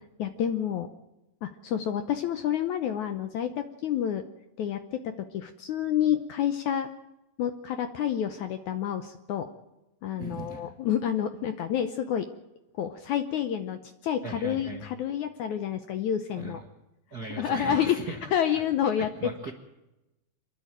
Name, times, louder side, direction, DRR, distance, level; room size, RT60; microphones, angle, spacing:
voice 1, 0.2-0.9 1.4-4.2 4.6-6.9 7.4-9.5 10.0-12.3 12.7-16.6 17.2-19.3, left 9 dB, 75° left, 9 dB, 1.8 m, -29 dB
voice 2, 10.2-10.7 14.2-14.9 16.4-16.7 17.1-18.3 19.0-19.5, right 4 dB, 65° right, 3 dB, 0.9 m, -38 dB
27.5 x 11.0 x 8.9 m, 0.97 s
omnidirectional pair, 4.3 m